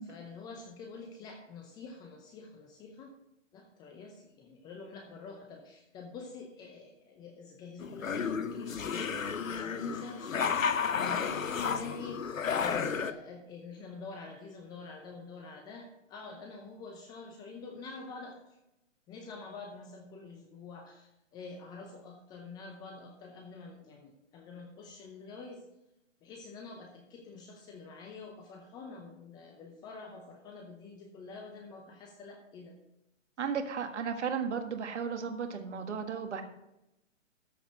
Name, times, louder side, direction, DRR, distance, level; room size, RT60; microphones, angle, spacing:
voice 1, 0.0-3.1 3.5-9.2 9.5-18.6 19.1-25.6 26.2-32.8, left 4 dB, 10° left, 3 dB, 0.6 m, -46 dB
sound 1, 7.8-13.1, left 6 dB, 85° left, 0.9 m, -32 dB
voice 2, 33.4-36.4, right 6 dB, 60° right, 6 dB, 1.7 m, -34 dB
13.5 x 5.1 x 6.5 m, 0.86 s
hypercardioid pair, 140°, 39 cm